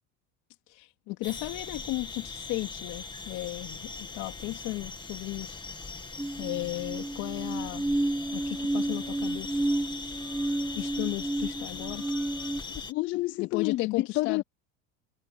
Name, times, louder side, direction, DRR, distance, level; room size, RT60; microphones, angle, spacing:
voice 1, 0.7-5.6 6.4-7.9 8.3-9.6 10.7-12.0 13.4-14.4, left 21 dB, 60° left, 3.1 m, -35 dB
sound 1, 1.2-12.9, left 4 dB, 15° left, 2.0 m, -41 dB
sound 2, 6.2-12.6, right 1 dB, 5° right, 0.9 m, -31 dB
voice 2, 12.7-14.4, left 18 dB, 40° left, 0.5 m, -29 dB
cardioid pair, 150°, 32 cm